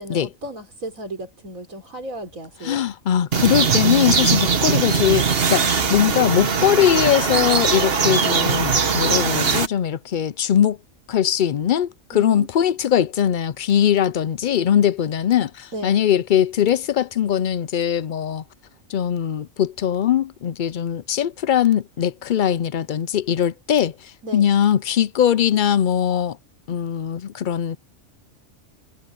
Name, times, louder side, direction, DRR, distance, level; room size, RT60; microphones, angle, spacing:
voice 1, 0.0-2.8 12.1-12.5 15.7-16.0 24.2-24.5, right 1 dB, 80° right, 4.7 m, -34 dB
voice 2, 2.6-10.8 11.1-18.4 18.9-26.4 26.7-27.8, left 10 dB, 65° left, 0.5 m, -21 dB
pajaritos morning, 3.3-9.7, right 5 dB, 45° right, 1.4 m, -20 dB
omnidirectional pair, 1.4 m